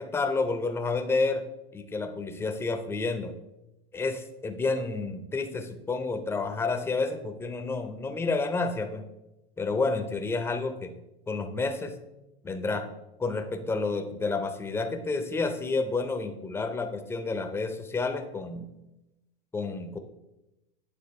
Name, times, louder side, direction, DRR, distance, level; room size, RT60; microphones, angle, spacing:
voice 1, 0.0-1.4 1.7-3.3 3.9-9.0 9.6-10.9 11.3-11.9 12.4-12.9 13.2-18.7 19.5-20.0, left 3 dB, 10° left, 7 dB, 0.5 m, -30 dB
8.8 x 3.8 x 3.1 m, 0.93 s
hypercardioid pair, 115°, 31 cm